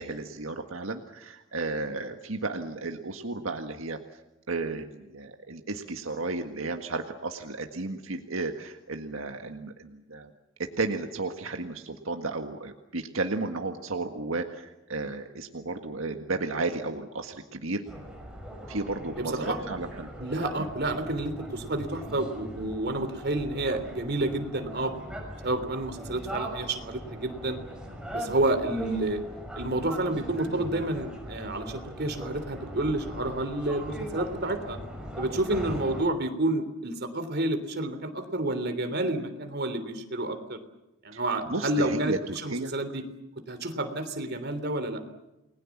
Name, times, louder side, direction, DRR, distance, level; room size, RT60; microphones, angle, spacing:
voice 1, 0.0-4.0 4.5-10.3 10.6-17.8 18.7-20.1 20.6-20.7 41.1-41.2 41.5-42.7, right 3 dB, 85° right, 5 dB, 1.7 m, -33 dB
sound 1, 17.9-36.1, equal, 5° right, 6.2 m, -40 dB
voice 2, 19.2-19.6 20.2-24.9 25.4-27.6 28.1-29.2 29.6-34.8 35.2-40.6 41.0-43.0 43.5-45.0, right 2 dB, 55° right, 8 dB, 3.4 m, -29 dB
30.0 x 21.0 x 7.3 m, 0.98 s
head